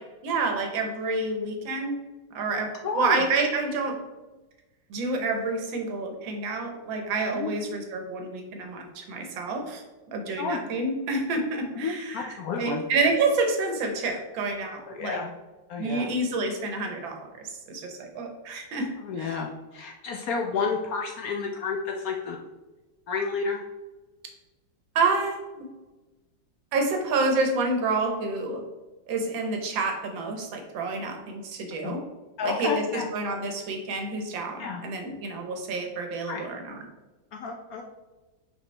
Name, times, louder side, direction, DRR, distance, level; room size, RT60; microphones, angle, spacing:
voice 1, 0.2-2.0 2.3-2.7 2.9-4.0 4.9-9.8 10.1-15.2 15.8-18.9 19.2-19.3 25.0-25.7 26.7-28.6 29.1-32.0 32.4-36.9, right 3 dB, 85° right, 3 dB, 1.7 m, -28 dB
voice 2, 2.8-3.2 7.3-7.5 10.3-10.6 11.7-12.8 14.9-15.3 15.7-16.1 19.0-22.4 23.1-23.6 31.8-32.0 32.4-33.1 34.6-34.8 36.3-36.4 37.3-37.8, left 5 dB, 70° left, 1 dB, 0.9 m, -30 dB
6.2 x 5.0 x 3.3 m, 1.1 s
omnidirectional pair, 2.0 m